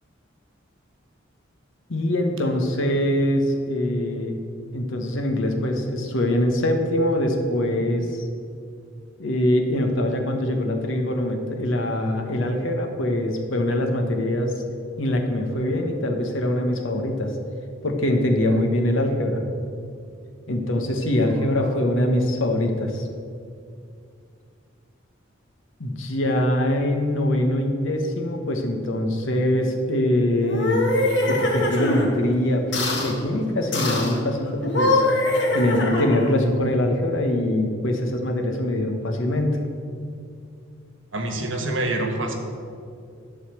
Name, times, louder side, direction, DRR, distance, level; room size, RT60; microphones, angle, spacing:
voice 1, 1.9-4.3 4.7-8.3 9.2-14.6 15.0-17.3 17.8-19.4 20.5-23.1 25.8-30.8 31.3-35.0 35.5-39.6, left 1 dB, 80° left, 3 dB, 1.2 m, -23 dB
sound 1, 30.4-32.1 32.7-33.1 33.7-34.2 34.6-36.3, left 1 dB, 65° left, 1.6 m, -23 dB
voice 2, 41.1-42.3, right 2 dB, 75° right, 4 dB, 1.4 m, -26 dB
11.5 x 4.1 x 7.6 m, 2.4 s
head